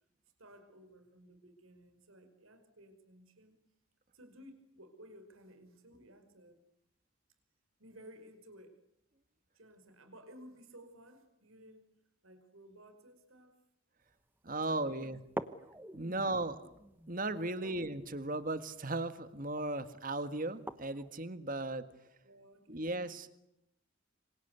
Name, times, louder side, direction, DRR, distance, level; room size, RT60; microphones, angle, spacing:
voice 1, 0.4-3.6 4.1-6.6 7.8-8.8 9.5-11.9 12.2-13.6 14.6-15.1 16.0-16.4 17.6-17.8 22.2-22.9, equal, 85° right, 7 dB, 5.5 m, -56 dB
sound 1, 14.1-14.2 14.6-14.7 15.2-21.2, right 1 dB, 10° right, 1.0 m, -47 dB
voice 2, 14.4-15.2 15.9-16.6 17.1-21.9 22.7-23.3, right 2 dB, 40° right, 11 dB, 1.7 m, -36 dB
27.0 x 26.0 x 8.2 m, 0.84 s
head